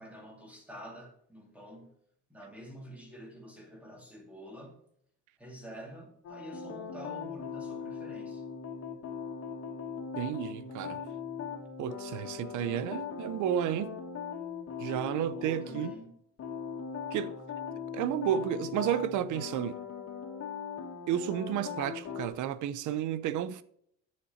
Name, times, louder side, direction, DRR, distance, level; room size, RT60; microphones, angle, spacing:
voice 1, 0.0-1.9 2.3-4.8 5.4-8.4 14.8-16.2, equal, 5° right, 2.6 m, -48 dB
sound 1, 6.2-16.0 16.4-22.3, left 6 dB, 50° left, 2.1 m, -40 dB
voice 2, 10.2-11.0 11.8-14.0 14.8-15.9 17.1-17.3 17.9-19.8 21.1-23.6, right 10 dB, 70° right, 0.8 m, -32 dB
10.0 x 6.8 x 4.4 m
cardioid pair, 145°, 31 cm